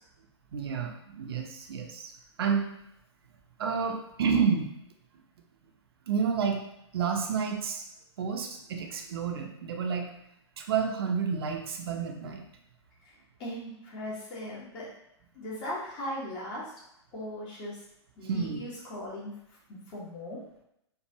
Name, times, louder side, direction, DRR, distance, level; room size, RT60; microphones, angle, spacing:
voice 1, 0.5-2.1 2.4-2.6 3.6-4.7 6.1-6.6 6.9-7.8 8.2-10.1 10.6-12.4 18.2-18.6, right 6 dB, 55° right, 2 dB, 0.7 m, -30 dB
voice 2, 13.4-14.9 15.3-16.7 17.1-17.8 18.2-19.3 19.9-20.4, left 1 dB, 30° left, -6 dB, 1.3 m, -38 dB
4.6 x 2.5 x 2.8 m, 0.78 s
figure-of-eight pair, 115°, 15 cm